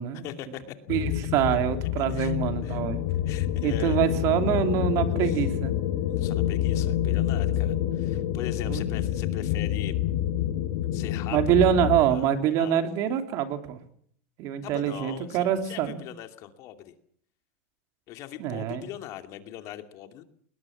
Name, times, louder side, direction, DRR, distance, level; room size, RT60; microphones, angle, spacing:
voice 1, 0.2-0.8 2.0-2.4 2.6-2.8 3.3-4.1 5.2-5.4 6.1-10.0 10.9-11.4 12.1-12.3 12.5-12.8 14.6-16.9 18.1-20.2, left 12 dB, 45° left, 8 dB, 2.6 m, -40 dB
sound 1, 0.9-12.0, left 11 dB, 65° left, 6.0 m, -27 dB
voice 2, 0.9-3.0 3.6-5.7 8.7-8.8 11.3-13.8 14.4-16.0 18.4-18.8, right 9 dB, 45° right, 7 dB, 3.1 m, -25 dB
21.0 x 20.0 x 7.3 m, 0.62 s
supercardioid pair, 135°, 7 cm